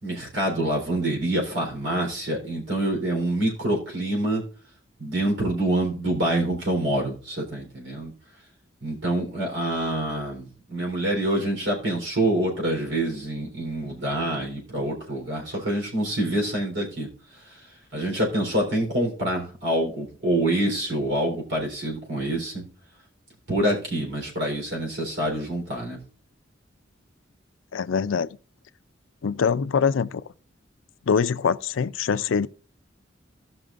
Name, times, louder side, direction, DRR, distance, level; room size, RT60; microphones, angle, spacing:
voice 1, 0.0-4.4 5.0-8.1 8.8-17.1 17.9-22.6 23.5-26.0, right 1 dB, 70° right, 3.7 m, -26 dB
voice 2, 27.7-28.4 29.2-30.2 31.1-32.5, left 6 dB, 80° left, 0.4 m, -23 dB
17.5 x 6.0 x 2.5 m
head